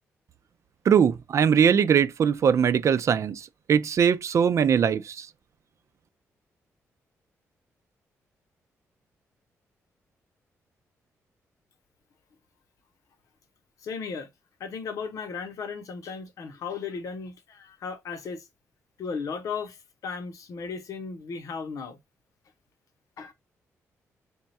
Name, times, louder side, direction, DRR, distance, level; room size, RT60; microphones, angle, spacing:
voice 1, 0.9-5.3, right 7 dB, 60° right, 0.5 m, -21 dB
voice 2, 13.8-14.3 14.6-18.5 19.0-19.8 20.0-22.0 23.2-23.3, left 5 dB, 75° left, 0.9 m, -35 dB
3.6 x 2.3 x 4.1 m
cardioid pair, 80°, 6 cm